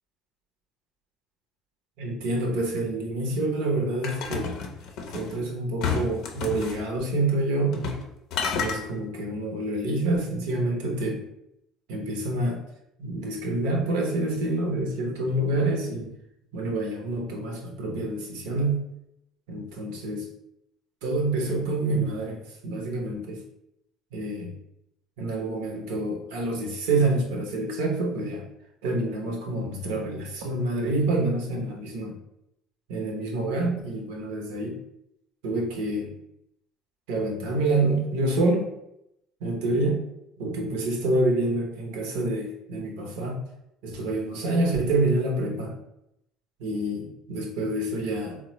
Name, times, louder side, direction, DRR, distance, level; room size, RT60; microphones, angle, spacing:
voice 1, 2.0-4.6 5.1-8.0 8.6-11.2 11.9-12.6 13.0-16.1 16.5-18.8 19.5-20.3 21.0-22.4 22.6-23.4 24.1-24.5 25.2-28.5 28.8-32.1 32.9-34.7 35.4-36.1 37.1-38.7 39.4-40.0 40.4-43.4 43.8-45.7 46.6-48.4, right 2 dB, 75° right, 1 dB, 0.7 m, -27 dB
sound 1, 4.0-5.3 5.8-6.8 7.7-8.0 8.3-8.8, left 6 dB, 65° left, 0.5 m, -30 dB
3.8 x 2.1 x 2.9 m, 0.83 s
hypercardioid pair, 65°, 0 cm